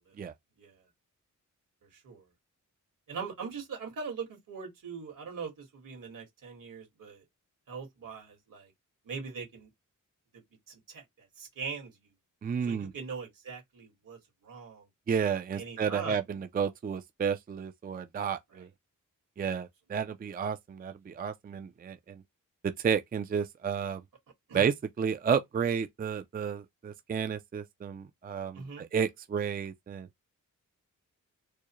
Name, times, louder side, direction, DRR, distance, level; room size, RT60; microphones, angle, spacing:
voice 1, 1.8-2.2 3.1-7.2 7.7-8.7 9.1-9.7 10.3-10.4 10.7-11.9 12.6-14.9 15.6-16.2 24.5-24.7 28.5-28.9, right 5 dB, 80° right, 1.9 m, -41 dB
voice 2, 12.4-12.9 15.1-18.7 19.4-22.2 22.6-24.0 24.5-30.1, right 7 dB, 30° right, 0.4 m, -32 dB
4.6 x 2.1 x 3.0 m
wide cardioid pair, 120°, 32 cm